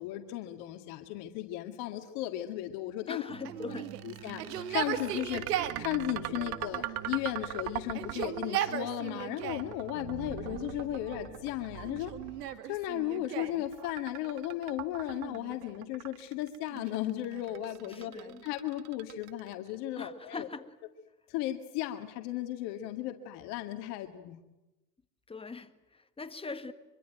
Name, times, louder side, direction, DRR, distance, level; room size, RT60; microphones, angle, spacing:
voice 1, 0.0-3.2 4.0-5.5 5.8-12.1 12.6-20.5 21.3-24.4, left 13 dB, 55° left, 2.0 m, -35 dB
voice 2, 3.1-4.2 17.9-18.4 19.9-20.6 25.3-26.7, left 4 dB, 10° left, 1.7 m, -42 dB
sound 1, 3.3-12.5, right 9 dB, 30° right, 2.0 m, -47 dB
Yell, 3.4-5.8 6.7-7.5 7.8-9.7 10.5-11.1 11.8-13.6 15.0-15.9 16.7-18.4, right 10 dB, 75° right, 2.2 m, -38 dB
sound 2, 3.6-19.7, right 16 dB, 60° right, 1.4 m, -41 dB
25.0 x 24.5 x 9.2 m
hypercardioid pair, 105°, 48 cm